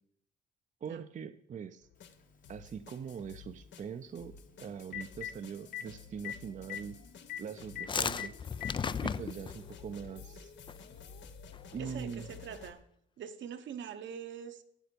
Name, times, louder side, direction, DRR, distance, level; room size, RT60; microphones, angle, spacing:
voice 1, 0.8-1.9 2.5-7.0 7.4-8.3 9.0-10.5 11.7-12.3, right 7 dB, 40° right, 9 dB, 0.5 m, -42 dB
sound 1, 1.8-12.7, left 7 dB, 65° left, 0.9 m, -52 dB
Telephone, 2.1-2.2 4.4-4.5 4.8-5.3 5.7-5.8 6.2-6.4 6.6-6.8 7.3-7.4 7.8-7.9 8.2-8.7 9.7-9.8 11.3-11.4, left 11 dB, 45° left, 1.2 m, -39 dB
sound 2, 7.6-9.7 10.7-11.0 11.2-11.3 11.5-11.9, left 6 dB, 25° left, 0.3 m, -34 dB
voice 2, 11.8-12.8 13.2-14.6, right 8 dB, 70° right, 9 dB, 1.0 m, -43 dB
9.1 x 7.7 x 6.9 m, 0.73 s
cardioid pair, 90°, 20 cm